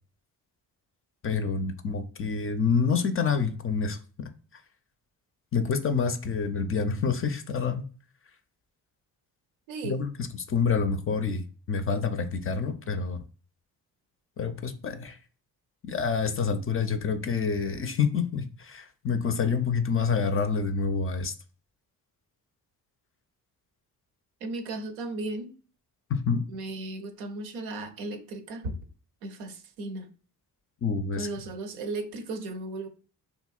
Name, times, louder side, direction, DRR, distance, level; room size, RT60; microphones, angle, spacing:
voice 1, 1.2-4.6 5.5-7.8 9.8-10.1 10.5-13.2 14.4-15.2 15.9-21.3 26.1-26.4 30.8-31.3, left 5 dB, 30° left, 0.4 m, -27 dB
voice 2, 19.3-19.6 24.4-25.5 26.5-28.7 29.2-30.1 31.1-32.9, right 2 dB, 85° right, 0.6 m, -36 dB
2.8 x 2.8 x 2.3 m
hypercardioid pair, 45°, 46 cm